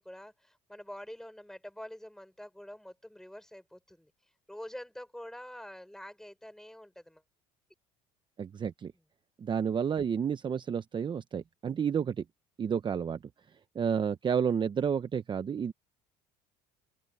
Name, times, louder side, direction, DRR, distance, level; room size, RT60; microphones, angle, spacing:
voice 1, 0.0-4.1 4.5-7.2, left 1 dB, 5° left, 5.4 m, -46 dB
voice 2, 8.4-8.9 9.4-12.2 12.6-13.2 13.7-15.7, right 7 dB, 30° right, 0.9 m, -30 dB
open air
supercardioid pair, 100°, 15 cm